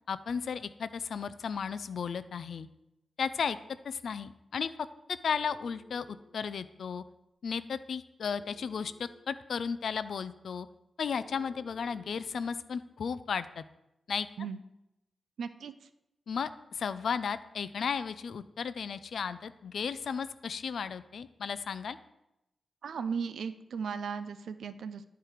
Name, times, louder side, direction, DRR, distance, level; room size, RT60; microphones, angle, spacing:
voice 1, 0.1-2.7 3.2-3.6 3.8-4.7 5.1-7.0 7.4-10.7 11.0-13.6 14.1-14.3 16.3-22.0, left 6 dB, 70° left, 14 dB, 0.4 m, -34 dB
Telephone, 5.2-6.3 8.2-9.2 11.1-12.2, right 2 dB, 35° right, 1.3 m, -57 dB
voice 2, 15.4-15.9 22.8-25.0, right 6 dB, 90° right, 12 dB, 0.5 m, -36 dB
11.0 x 4.6 x 4.9 m, 0.88 s
wide cardioid pair, 150°, 0 cm